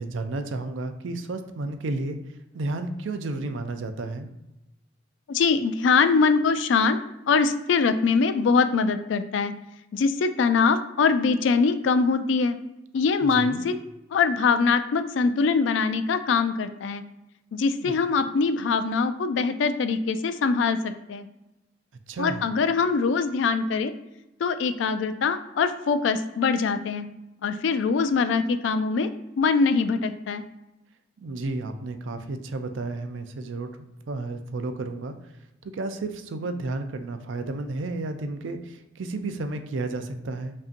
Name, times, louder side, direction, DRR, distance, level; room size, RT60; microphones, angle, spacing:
voice 1, 0.0-2.2 2.5-4.3 13.2-13.6 17.8-17.9 22.1-22.4 31.2-33.7 34.1-35.1 35.7-40.5, right 2 dB, 80° right, 8 dB, 0.4 m, -32 dB
voice 2, 5.3-7.0 7.3-9.5 9.9-12.6 12.9-13.8 14.1-17.0 17.5-21.3 22.2-23.9 24.4-27.1 27.4-29.1 29.4-30.4, left 5 dB, 75° left, 11 dB, 0.3 m, -23 dB
5.3 x 2.6 x 2.5 m, 0.94 s
head